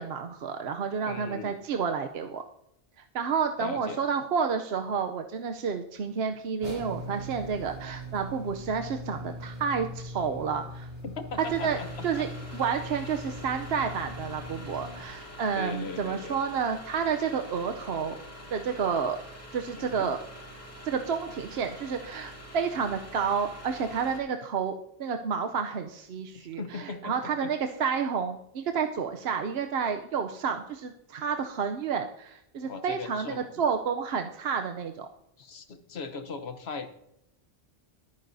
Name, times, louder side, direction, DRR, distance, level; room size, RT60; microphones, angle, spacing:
voice 1, 0.0-2.4 3.1-10.9 11.5-12.3 12.5-18.2 18.5-19.2 19.5-20.2 20.8-24.7 25.0-35.1, right 6 dB, 75° right, 6 dB, 1.0 m, -30 dB
voice 2, 1.1-1.6 3.6-4.0 11.0-12.3 13.0-13.2 15.5-16.4 19.8-20.1 26.3-27.5 32.6-33.5 35.4-36.9, left 4 dB, 75° left, 9 dB, 1.3 m, -39 dB
sound 1, 6.6-15.0, equal, 30° right, 3.5 m, -41 dB
sound 2, 11.4-24.2, equal, 15° left, 2.3 m, -46 dB
22.5 x 9.5 x 2.7 m, 0.81 s
omnidirectional pair, 1.1 m